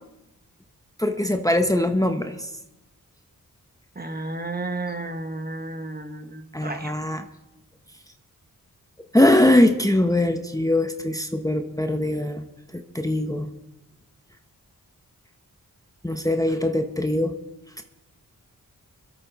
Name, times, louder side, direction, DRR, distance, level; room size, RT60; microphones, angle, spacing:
voice 1, 1.0-2.5 6.5-7.2 9.1-12.4 12.7-13.5 16.0-17.4 17.8-17.9, left 1 dB, 10° left, 5 dB, 1.1 m, -21 dB
voice 2, 3.9-6.9, right 2 dB, 25° right, 5 dB, 1.4 m, -32 dB
24.0 x 8.8 x 4.2 m, 0.95 s
cardioid pair, 55°, 35 cm